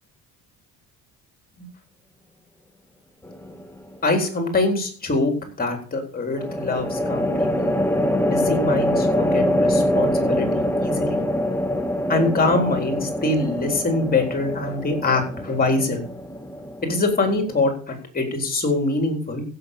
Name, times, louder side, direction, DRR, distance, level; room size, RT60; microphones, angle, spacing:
sound 1, 3.2-3.8 6.4-17.7, equal, 5° left, 1.1 m, -24 dB
voice 1, 4.0-5.3 5.6-7.7 8.3-11.2 12.1-16.0 16.8-19.4, left 2 dB, 25° left, 4 dB, 3.9 m, -24 dB
15.5 x 6.8 x 6.8 m, 0.43 s
cardioid pair, 150°, 37 cm